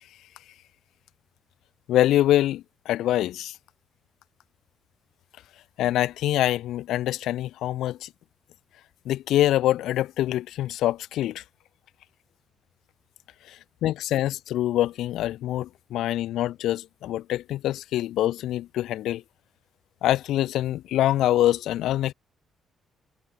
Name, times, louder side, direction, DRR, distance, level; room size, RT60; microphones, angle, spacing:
voice 1, 1.9-3.6 5.8-8.1 9.1-11.4 13.5-19.2 20.0-22.1, left 13 dB, 85° left, 7.3 m, -25 dB
cardioid pair, 90°, 0 cm